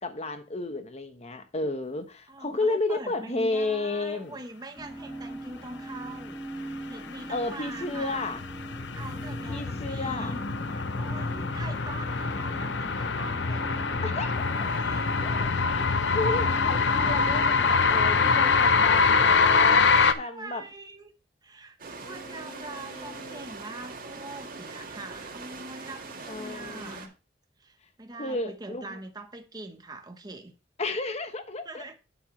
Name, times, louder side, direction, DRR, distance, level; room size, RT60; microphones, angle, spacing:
voice 1, 0.0-4.4 7.3-8.4 9.5-10.4 14.0-14.4 15.2-20.6 22.0-23.5 26.2-27.1 28.2-29.0 30.8-31.8, left 2 dB, 35° left, 1.1 m, -32 dB
voice 2, 2.3-6.4 6.9-8.3 8.9-10.4 10.7-13.9 14.6-15.2 20.0-21.1 21.4-27.1 27.6-30.5 31.6-32.0, right 2 dB, 20° right, 1.1 m, -43 dB
sound 1, 4.8-18.5, right 1 dB, 5° left, 4.0 m, -41 dB
sound 2, 7.3-20.1, left 4 dB, 70° left, 0.7 m, -24 dB
sound 3, 21.8-27.1, right 3 dB, 50° right, 1.9 m, -42 dB
9.3 x 7.8 x 3.2 m
head